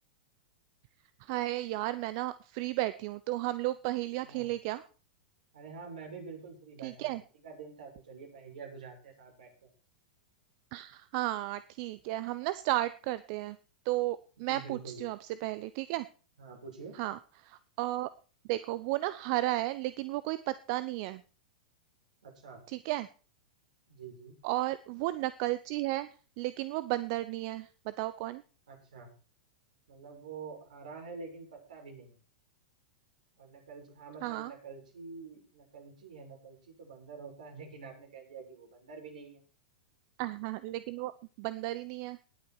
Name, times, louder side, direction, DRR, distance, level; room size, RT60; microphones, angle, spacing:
voice 1, 1.2-4.8 6.8-7.2 10.7-13.6 13.8-16.1 16.9-18.1 18.5-21.2 22.7-23.1 24.4-26.1 26.4-28.4 34.2-34.5 40.2-41.1 41.4-42.2, right 17 dB, 50° right, 15 dB, 0.7 m, -33 dB
voice 2, 5.5-7.1 7.4-9.7 14.5-15.0 16.4-17.0 22.2-22.6 23.9-24.4 28.7-29.1 29.9-32.2 33.4-39.4, right 5 dB, 75° right, 1 dB, 7.0 m, -47 dB
19.5 x 8.5 x 4.5 m, 0.38 s
hypercardioid pair, 100°, 4 cm